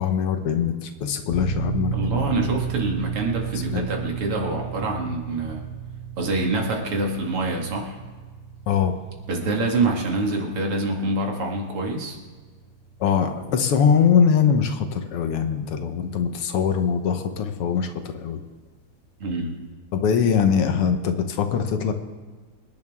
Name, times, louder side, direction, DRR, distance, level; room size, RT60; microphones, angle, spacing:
voice 1, 0.0-2.5 3.7-3.9 8.7-8.9 13.0-18.4 19.9-21.9, left 7 dB, 90° left, 7 dB, 2.0 m, -22 dB
sound 1, 1.3-15.7, right 6 dB, 40° left, 1.2 m, -34 dB
voice 2, 1.9-5.7 6.2-8.0 9.3-12.2 19.2-19.6, right 2 dB, 80° right, 0 dB, 2.9 m, -26 dB
24.5 x 10.5 x 3.6 m, 1.4 s
omnidirectional pair, 2.4 m